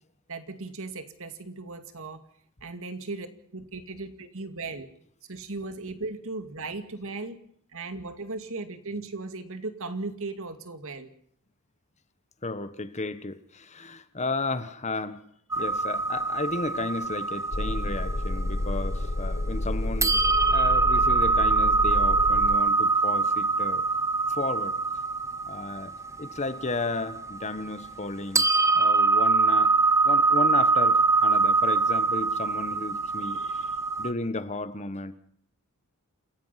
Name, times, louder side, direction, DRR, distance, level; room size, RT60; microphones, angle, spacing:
voice 1, 0.3-2.2 2.6-3.3 3.5-4.9 5.3-7.4 7.7-11.1, right 3 dB, 65° right, 2.4 m, -37 dB
voice 2, 12.4-15.2 15.6-20.2 20.5-23.8 24.3-24.8 25.5-25.9 26.2-28.5 28.7-29.7 30.0-33.7 34.0-35.2, left 2 dB, 30° left, 1.3 m, -33 dB
sound 1, 15.5-19.6 20.0-28.1 28.4-34.1, right 3 dB, 15° right, 0.9 m, -24 dB
sound 2, 17.5-22.6, left 1 dB, 50° left, 1.1 m, -29 dB
28.0 x 16.0 x 5.8 m
head